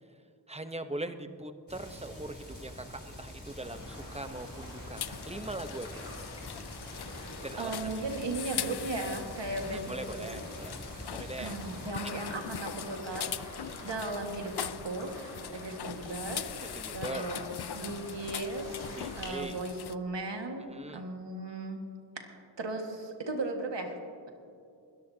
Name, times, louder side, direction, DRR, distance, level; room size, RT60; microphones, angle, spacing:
voice 1, 0.5-6.1 7.4-8.0 9.7-10.8 11.1-11.6 12.0-12.2 13.6-13.8 16.6-17.3 18.9-19.6 20.7-21.0, right 2 dB, 15° right, 9 dB, 0.9 m, -41 dB
sound 1, 1.7-11.9, equal, 25° left, 4.0 m, -46 dB
sound 2, 3.6-19.3, left 1 dB, 85° left, 4.0 m, -47 dB
sound 3, 5.0-19.9, left 10 dB, 65° left, 0.5 m, -41 dB
voice 2, 7.1-10.4 11.4-16.5 16.9-21.8 22.2-24.0, right 2 dB, 75° right, 3 dB, 1.8 m, -37 dB
21.5 x 14.0 x 2.8 m, 2.5 s
cardioid pair, 45°, 43 cm